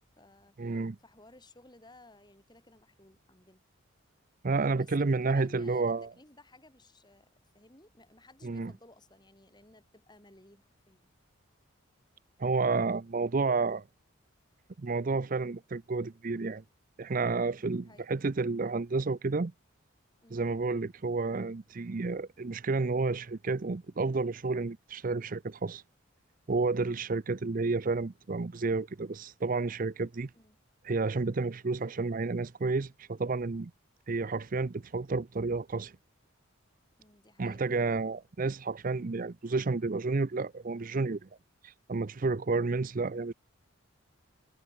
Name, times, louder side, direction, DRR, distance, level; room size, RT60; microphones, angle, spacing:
voice 1, 0.0-3.6 4.7-7.3 7.5-11.1 17.5-18.0 20.2-20.4 30.3-30.6 37.0-37.9 42.7-42.9, left 2 dB, 20° left, 5.0 m, -58 dB
voice 2, 0.6-1.0 4.4-6.1 8.4-8.7 12.4-13.8 14.8-16.6 17.0-19.5 20.3-25.8 26.5-30.3 30.8-33.7 34.1-35.9 37.4-41.3 41.6-43.3, right 3 dB, 40° right, 0.5 m, -30 dB
head